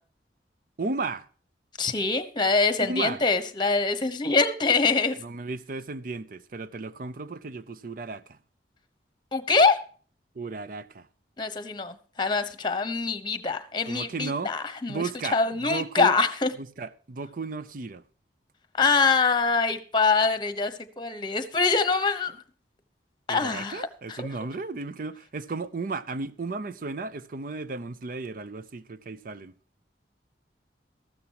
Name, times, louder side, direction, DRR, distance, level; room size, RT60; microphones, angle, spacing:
voice 1, 0.8-1.3 2.8-3.2 5.2-8.4 10.3-11.1 13.9-14.5 14.9-16.1 16.6-18.0 23.3-29.5, right 3 dB, 50° right, 0.5 m, -34 dB
voice 2, 1.8-5.2 9.3-9.8 11.4-16.5 18.8-22.4 23.3-24.3, left 4 dB, 25° left, 1.0 m, -24 dB
14.5 x 13.0 x 2.9 m
head